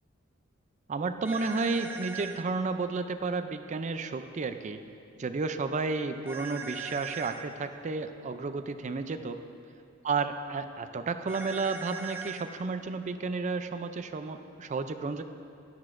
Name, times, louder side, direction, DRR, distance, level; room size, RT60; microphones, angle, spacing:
voice 1, 0.9-4.8 5.2-9.4 10.0-15.2, right 4 dB, 35° right, 9 dB, 0.4 m, -32 dB
sound 1, 1.2-2.4 6.3-7.4 11.3-12.4, right 5 dB, 10° right, 0.7 m, -40 dB
13.0 x 11.0 x 2.5 m, 2.6 s
head